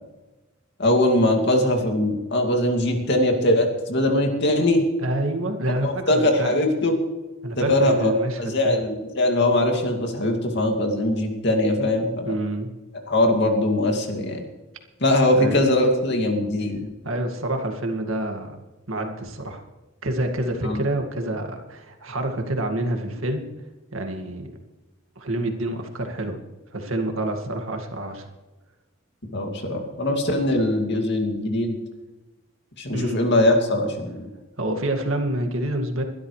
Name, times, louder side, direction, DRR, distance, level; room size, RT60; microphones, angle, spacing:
voice 1, 0.8-4.8 5.8-7.0 7.7-8.1 8.4-12.4 13.1-14.4 15.0-16.8 20.6-20.8 29.3-31.8 32.8-34.3, left 1 dB, 55° left, 3 dB, 2.4 m, -21 dB
voice 2, 5.0-6.5 7.4-8.8 12.3-12.7 15.3-15.6 17.0-18.6 18.9-19.6 20.0-23.4 23.9-24.5 25.2-26.4 26.7-28.3 32.9-33.2 34.6-36.0, right 1 dB, 70° right, 4 dB, 2.1 m, -27 dB
22.0 x 12.0 x 3.3 m, 1.1 s
head